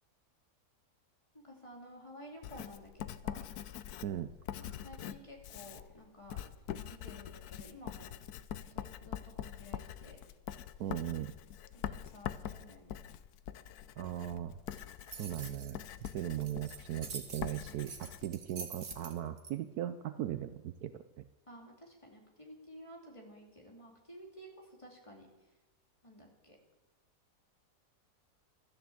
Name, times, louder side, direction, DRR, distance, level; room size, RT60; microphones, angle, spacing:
voice 1, 1.3-3.5 4.6-6.4 6.7-8.1 8.6-10.2 11.7-13.0 21.5-25.3 26.0-26.6, equal, 20° left, 0 dB, 2.7 m, -53 dB
Writing, 2.4-19.1, left 10 dB, 70° left, 1.1 m, -44 dB
voice 2, 10.8-11.3 14.0-14.6 15.2-15.8 16.1-21.2, right 11 dB, 70° right, 11 dB, 1.1 m, -38 dB
sound 1, 14.7-19.5, right 5 dB, 45° right, 1.5 m, -46 dB
13.0 x 10.5 x 7.9 m, 1.1 s
omnidirectional pair, 1.8 m